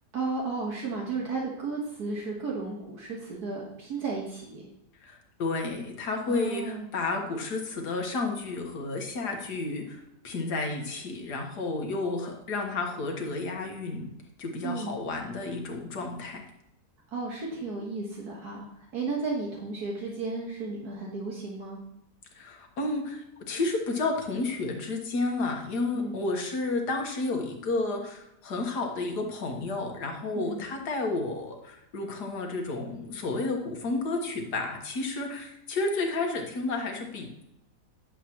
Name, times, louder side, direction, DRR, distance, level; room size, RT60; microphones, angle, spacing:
voice 1, 0.1-4.6 6.3-6.9 14.6-14.9 17.1-21.8 25.9-26.2 30.3-30.6, right 3 dB, 75° right, -3 dB, 2.0 m, -34 dB
voice 2, 5.0-14.1 14.4-16.4 22.4-37.4, left 3 dB, 85° left, 2 dB, 1.9 m, -31 dB
10.5 x 7.2 x 3.0 m, 0.83 s
omnidirectional pair, 1.7 m